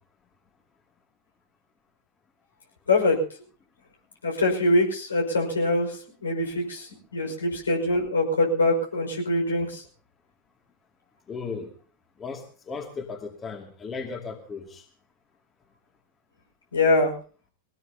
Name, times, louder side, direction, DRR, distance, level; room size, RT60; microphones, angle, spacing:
voice 1, 4.2-9.8 16.7-17.1, left 2 dB, 80° left, 1 dB, 5.5 m, -24 dB
voice 2, 11.3-11.7 12.2-14.8, left 4 dB, 25° left, 3 dB, 2.5 m, -36 dB
22.0 x 18.0 x 2.9 m, 0.42 s
figure-of-eight pair, 95°, 0 cm